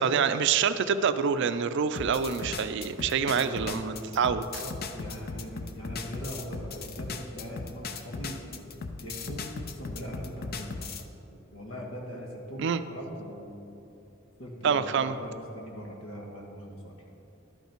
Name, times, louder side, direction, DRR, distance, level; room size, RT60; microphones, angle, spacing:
voice 1, 0.0-4.6 12.6-12.8 14.6-15.1, right 6 dB, 60° right, 12 dB, 0.4 m, -26 dB
sound 1, 2.0-11.1, left 4 dB, 50° left, 0.5 m, -37 dB
voice 2, 3.3-8.7 9.0-9.5 9.7-10.9 11.3-13.8 14.4-16.9, equal, 85° left, -1 dB, 1.6 m, -41 dB
11.5 x 5.6 x 4.5 m, 2.8 s
head